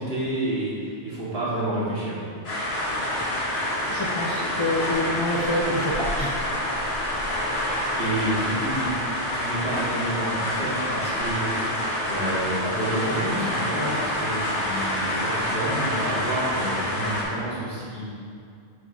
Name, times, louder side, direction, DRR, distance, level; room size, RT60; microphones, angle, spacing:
voice 1, 0.0-2.2 7.5-8.9 9.3-11.5 12.0-18.1, right 1 dB, 55° right, -9 dB, 2.2 m, -29 dB
sound 1, 2.4-17.2, left 1 dB, 60° left, 1.9 m, -27 dB
voice 2, 3.9-6.3, left 1 dB, 30° left, -4 dB, 0.6 m, -27 dB
9.6 x 5.9 x 2.8 m, 2.3 s
omnidirectional pair, 1.2 m